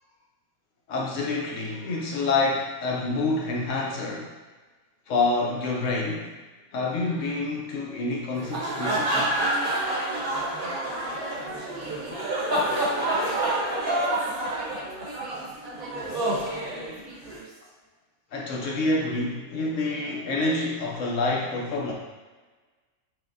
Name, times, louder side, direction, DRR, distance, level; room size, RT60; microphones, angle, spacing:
voice 1, 0.9-4.3 5.1-6.3 6.7-9.4 16.9-17.0 18.3-21.9, left 3 dB, 70° left, -2 dB, 0.8 m, -27 dB
sound 1, 8.3-17.4, right 1 dB, 45° right, 0.9 m, -28 dB
voice 2, 10.1-14.7 15.0-17.7, right 2 dB, 70° right, -5 dB, 1.4 m, -42 dB
5.7 x 2.1 x 2.5 m, 1.3 s
omnidirectional pair, 1.5 m